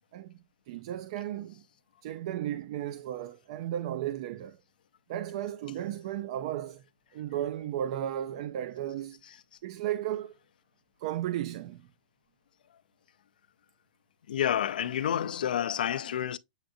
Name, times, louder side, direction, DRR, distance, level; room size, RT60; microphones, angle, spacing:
voice 1, 0.7-1.6 2.0-4.6 5.1-6.8 7.1-9.2 9.6-10.3 11.0-11.8, right 11 dB, 45° right, 0.4 m, -34 dB
voice 2, 14.3-16.4, left 10 dB, 80° left, 0.5 m, -29 dB
7.8 x 2.6 x 2.4 m
hypercardioid pair, 160°, 5 cm